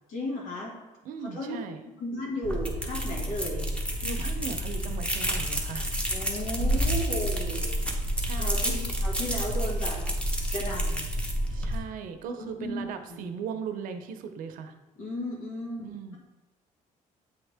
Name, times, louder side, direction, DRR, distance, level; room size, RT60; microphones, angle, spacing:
voice 1, 0.1-0.7 1.2-1.6 2.0-3.7 6.1-7.8 8.3-8.7 9.0-10.0 10.5-11.1 12.4-13.2 15.0-16.2, equal, 80° left, -2 dB, 1.8 m, -35 dB
voice 2, 1.0-1.8 4.0-6.0 8.2-8.9 11.5-14.8 15.8-16.2, right 5 dB, 75° right, 7 dB, 0.7 m, -38 dB
sound 1, 2.4-11.8, equal, 10° left, 0.9 m, -29 dB
8.0 x 3.6 x 3.4 m, 1.1 s
cardioid pair, 120°, 14 cm